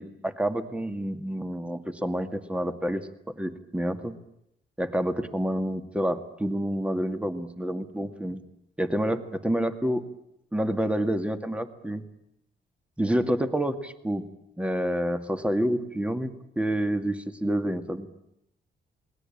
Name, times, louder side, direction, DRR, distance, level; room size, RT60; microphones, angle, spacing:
voice 1, 0.0-3.1 3.4-4.2 4.8-8.4 8.8-10.1 10.5-12.0 13.0-14.3 14.6-18.1, equal, 5° right, 8 dB, 2.2 m, -28 dB
27.5 x 21.0 x 8.7 m, 0.81 s
cardioid pair, 105°, 18 cm